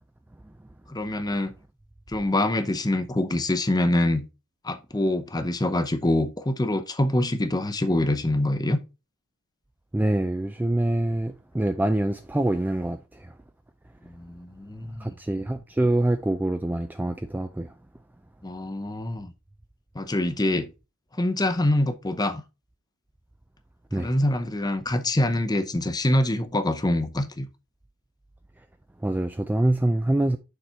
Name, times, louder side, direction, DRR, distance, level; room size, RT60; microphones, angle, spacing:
voice 1, 0.9-1.5 2.1-4.3 4.6-8.8 14.0-15.1 18.4-19.3 19.9-20.7 21.2-22.4 23.9-27.5, left 1 dB, 20° left, 0.7 m, -25 dB
voice 2, 9.9-13.0 15.0-17.7 23.9-24.1 29.0-30.4, right 1 dB, 10° right, 0.3 m, -25 dB
6.8 x 4.2 x 4.3 m
head